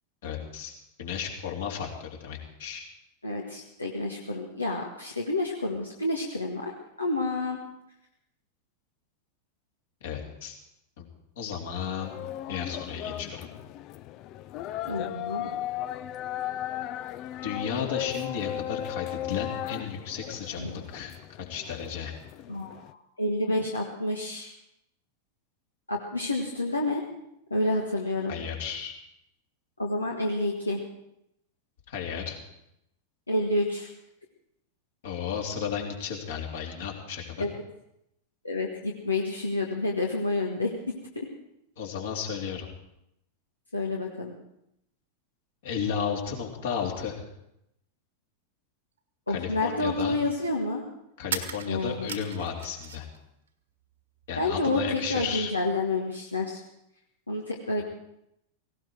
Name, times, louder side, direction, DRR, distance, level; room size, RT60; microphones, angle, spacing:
voice 1, 0.2-2.9 10.0-10.6 11.0-11.1 11.4-12.1 12.5-13.5 17.4-20.6 20.9-21.1 21.5-22.1 28.3-29.0 31.9-32.4 35.0-37.5 41.8-42.7 45.6-47.1 49.3-50.2 51.2-53.1 54.3-55.5, left 7 dB, 55° left, 1 dB, 3.3 m, -33 dB
voice 2, 3.2-6.7 7.0-7.6 14.9-15.5 20.6-20.8 22.5-24.5 25.9-27.0 27.5-28.3 29.8-30.8 33.3-33.9 37.4-37.6 38.4-40.7 41.1-41.3 43.7-44.3 49.3-50.8 51.7-52.1 54.4-56.6 57.3-57.8, left 2 dB, 80° left, -1 dB, 1.6 m, -29 dB
sound 1, 12.0-22.9, left 12 dB, 40° left, 0.6 m, -36 dB
sound 2, 49.0-49.1 51.2-53.2 53.5-54.3, right 7 dB, 65° right, 1.6 m, -38 dB
18.0 x 17.5 x 4.6 m, 0.81 s
figure-of-eight pair, 90°, 0 cm